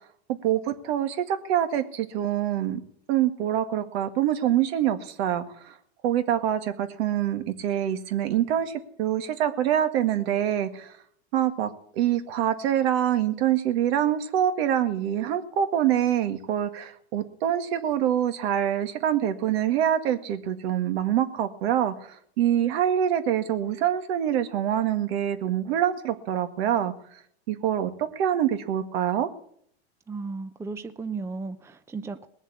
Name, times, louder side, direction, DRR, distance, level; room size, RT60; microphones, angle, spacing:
voice 1, 0.4-2.8 3.1-5.7 6.0-10.9 11.3-26.9 27.5-29.3, right 10 dB, 65° right, 9 dB, 1.9 m, -25 dB
voice 2, 30.1-32.3, right 4 dB, 10° right, 10 dB, 0.6 m, -35 dB
19.5 x 7.3 x 8.6 m, 0.66 s
supercardioid pair, 130°, 33 cm